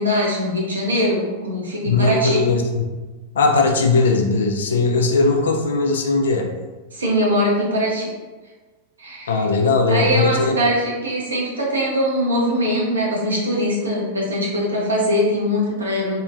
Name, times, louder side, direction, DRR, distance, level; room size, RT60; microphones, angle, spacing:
voice 1, 0.0-2.4 6.9-8.1 9.0-9.4 9.9-16.2, equal, 75° right, -4 dB, 0.7 m, -21 dB
voice 2, 1.8-2.8 3.3-6.5 9.3-10.6, left 3 dB, 65° left, 3 dB, 0.4 m, -18 dB
2.8 x 2.2 x 2.5 m, 1.2 s
figure-of-eight pair, 90°, 0 cm